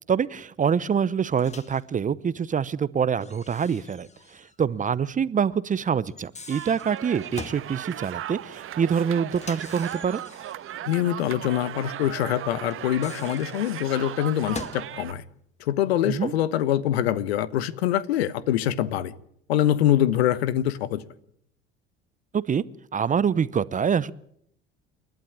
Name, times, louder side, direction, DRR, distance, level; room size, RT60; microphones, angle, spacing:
voice 1, 0.1-10.2 16.0-16.3 22.3-22.6 22.9-24.1, right 7 dB, 25° right, 0.8 m, -25 dB
Microwave oven, 1.4-1.8 3.2-4.6 4.9-5.0 6.1-7.7 9.3-10.7 12.7-14.9, left 4 dB, 20° left, 2.0 m, -43 dB
sound 1, 6.5-15.1, right 11 dB, 40° right, 1.4 m, -37 dB
voice 2, 10.9-15.2 15.6-19.1 19.5-21.0, left 11 dB, 70° left, 1.2 m, -24 dB
29.0 x 12.0 x 9.0 m
figure-of-eight pair, 65°, 32 cm